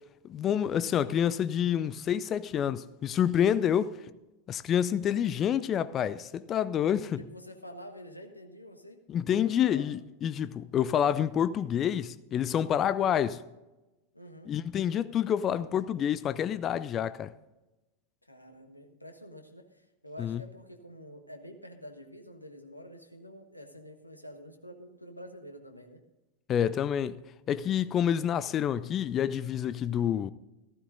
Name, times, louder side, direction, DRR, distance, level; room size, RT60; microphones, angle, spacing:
voice 1, 0.2-4.1 4.5-7.2 9.1-13.4 14.5-17.3 20.2-20.4 26.5-27.2 27.5-30.3, left 9 dB, 30° left, 0.4 m, -28 dB
voice 2, 7.2-9.4 9.7-9.9 14.1-14.6 18.2-26.0, equal, 85° left, 1.3 m, -48 dB
15.0 x 14.5 x 2.6 m
figure-of-eight pair, 90°, 0 cm